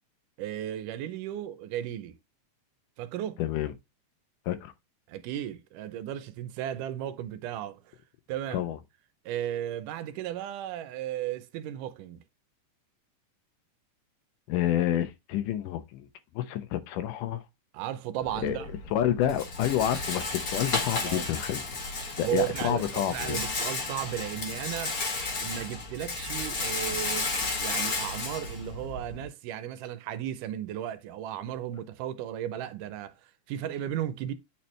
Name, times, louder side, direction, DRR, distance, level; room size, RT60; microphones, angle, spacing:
voice 1, 0.4-2.2 3.0-3.4 5.1-8.0 8.3-8.7 9.3-12.2 17.7-18.7 21.0-21.3 22.2-25.0 25.4-27.3 27.6-33.1 33.5-34.3, right 11 dB, 85° right, 2.2 m, -35 dB
voice 2, 3.4-3.7 4.5-4.7 8.5-8.8 14.5-16.1 16.4-17.4 18.4-18.6 18.9-21.8 22.2-23.4, left 11 dB, 80° left, 2.3 m, -29 dB
Rattle, 18.2-29.3, left 3 dB, 45° left, 1.2 m, -33 dB
8.6 x 4.2 x 3.2 m
omnidirectional pair, 3.7 m